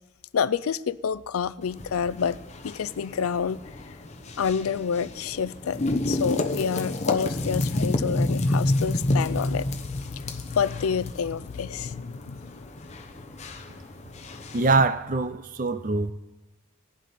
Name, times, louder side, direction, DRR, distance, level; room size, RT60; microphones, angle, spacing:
voice 1, 0.3-2.4 2.6-3.8 4.4-12.6, left 6 dB, 90° left, 0.4 m, -28 dB
sound 1, 1.6-14.8, left 1 dB, 30° left, 0.8 m, -30 dB
sound 2, 3.3-15.3, equal, 55° right, 3.5 m, -56 dB
voice 2, 14.5-16.1, right 3 dB, 40° right, 0.5 m, -23 dB
17.5 x 11.0 x 4.2 m
head